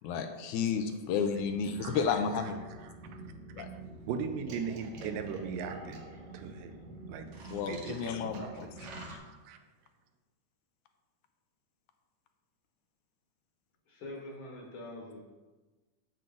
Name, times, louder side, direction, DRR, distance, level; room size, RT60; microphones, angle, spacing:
voice 1, 0.0-2.6 3.6-3.7 7.5-8.7 9.0-9.1, left 6 dB, 80° left, 6 dB, 1.9 m, -32 dB
sound 1, 1.3-9.2, right 3 dB, 65° right, 2.4 m, -46 dB
voice 2, 2.8-3.2 3.6-3.7 4.1-6.0 6.3-6.8 7.1-7.3 7.7-9.6, right 6 dB, 90° right, 6 dB, 2.3 m, -39 dB
voice 3, 13.9-15.2, left 1 dB, 50° left, -1 dB, 1.9 m, -44 dB
7.8 x 7.6 x 3.7 m, 1.2 s
omnidirectional pair, 3.7 m